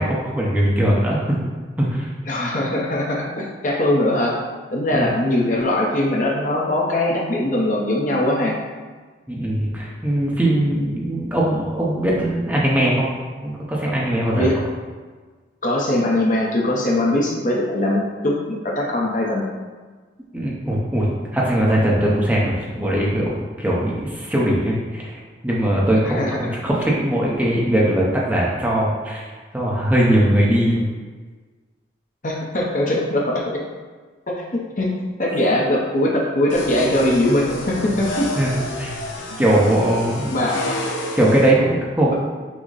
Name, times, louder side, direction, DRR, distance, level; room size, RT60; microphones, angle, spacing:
voice 1, 0.0-1.4 1.8-2.1 4.9-5.1 9.3-13.1 13.4-14.5 20.3-25.2 25.4-29.2 29.5-30.9 38.4-38.9 39.4-40.4 41.2-42.1, right 1 dB, 10° right, -5 dB, 0.7 m, -20 dB
voice 2, 2.3-4.4 4.7-8.6 14.3-14.5 15.6-19.4 26.0-26.4 32.2-33.6 34.3-34.4 34.8-34.9 35.2-38.3 40.3-40.6 42.1-42.2, left 1 dB, 45° left, -2 dB, 0.7 m, -21 dB
sound 1, 36.5-41.5, left 1 dB, 85° left, 0.6 m, -29 dB
6.1 x 2.1 x 4.0 m, 1.4 s
head